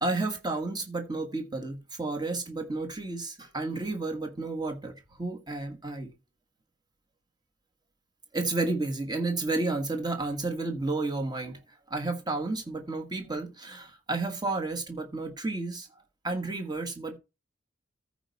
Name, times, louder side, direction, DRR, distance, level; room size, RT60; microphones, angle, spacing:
voice 1, 0.0-6.1 8.3-11.6 11.9-15.9 16.2-17.2, right 2 dB, 20° right, 1.5 m, -31 dB
14.0 x 4.7 x 4.1 m
head